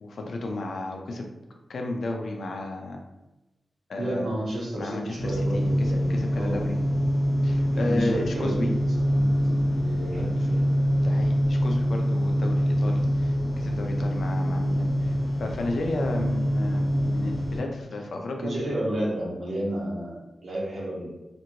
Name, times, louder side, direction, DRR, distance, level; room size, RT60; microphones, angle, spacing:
voice 1, 0.0-1.3 1.7-3.0 3.9-4.3 4.8-6.8 7.4-8.7 11.0-18.5, left 2 dB, 75° left, 2 dB, 0.4 m, -33 dB
voice 2, 4.0-6.7 7.7-8.7 9.1-10.6 18.4-20.1 20.4-21.1, right 1 dB, 70° right, -5 dB, 1.0 m, -31 dB
sound 1, 5.2-17.6, equal, 50° left, 1.2 m, -25 dB
2.9 x 2.5 x 2.7 m, 1.0 s
wide cardioid pair, 85°, 0 cm